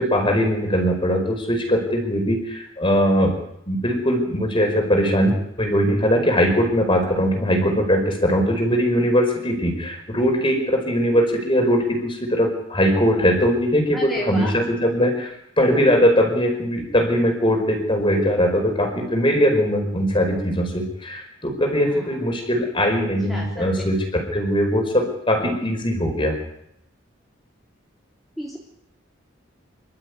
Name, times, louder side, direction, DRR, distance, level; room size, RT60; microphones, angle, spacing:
voice 1, 0.0-3.3 3.7-26.4, equal, 25° left, 4 dB, 5.0 m, -20 dB
voice 2, 13.9-14.5 21.7-22.1 23.3-23.7 28.4-28.6, equal, ahead, -3 dB, 3.3 m, -32 dB
26.5 x 13.0 x 9.6 m, 0.78 s
head